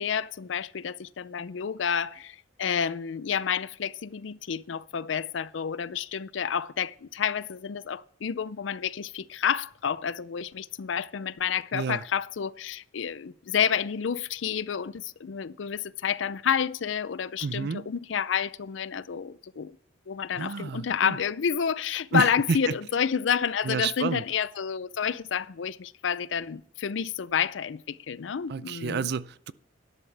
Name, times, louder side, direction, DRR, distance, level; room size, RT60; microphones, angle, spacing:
voice 1, 0.0-19.8 20.1-29.1, left 7 dB, 75° left, 0.5 m, -29 dB
voice 2, 11.7-12.0 17.4-17.9 20.4-21.2 22.1-22.6 23.6-24.2 28.5-29.5, right 5 dB, 60° right, 0.5 m, -30 dB
12.5 x 11.0 x 3.4 m
head